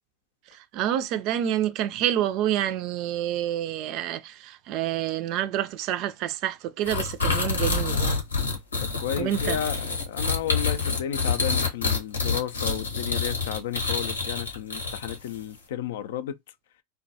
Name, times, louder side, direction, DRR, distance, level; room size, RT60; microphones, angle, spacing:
voice 1, 0.7-8.2 9.2-9.6, right 11 dB, 50° right, 0.3 m, -28 dB
sound 1, 6.9-15.4, left 4 dB, 90° left, 0.9 m, -27 dB
voice 2, 8.8-16.4, left 10 dB, 70° left, 0.3 m, -33 dB
2.2 x 2.2 x 2.7 m
hypercardioid pair, 90°, 0 cm